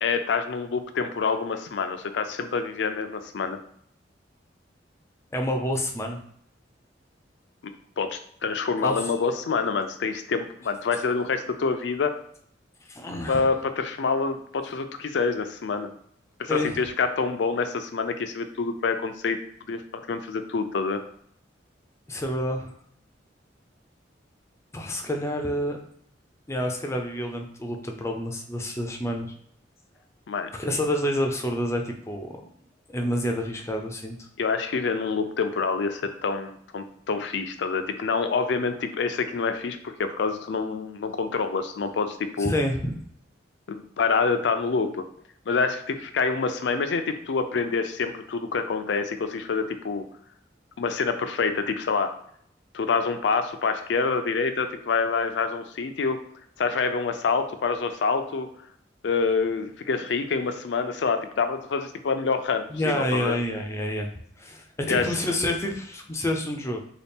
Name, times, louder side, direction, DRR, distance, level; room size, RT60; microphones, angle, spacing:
voice 1, 0.0-3.6 8.0-12.1 13.3-15.9 16.4-19.4 19.7-21.0 30.3-30.5 34.4-42.5 43.7-45.0 45.5-50.1 50.8-52.1 52.7-56.2 56.6-58.5 59.0-63.4 64.9-65.0, left 4 dB, 70° left, 8 dB, 0.4 m, -26 dB
voice 2, 5.3-6.2 8.8-9.0 12.9-13.5 16.5-16.8 22.1-22.7 24.7-25.8 26.5-29.3 30.5-32.4 32.9-34.3 42.4-42.9 62.7-64.1 64.4-66.8, left 1 dB, 15° left, 3 dB, 0.5 m, -28 dB
4.0 x 2.3 x 3.5 m, 0.68 s
head